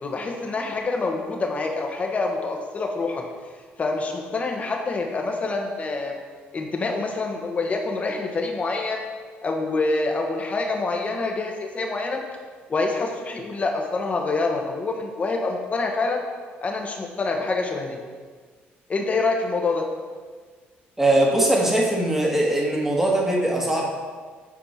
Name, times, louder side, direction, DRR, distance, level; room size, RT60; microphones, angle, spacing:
voice 1, 0.0-3.2 3.8-6.1 6.5-9.0 9.4-12.2 12.7-16.2 16.6-18.0 18.9-19.8, left 3 dB, 35° left, 2 dB, 1.2 m, -26 dB
voice 2, 21.0-23.9, right 1 dB, 10° right, -2 dB, 1.7 m, -21 dB
8.6 x 4.4 x 4.3 m, 1.5 s
cardioid pair, 95°, 4 cm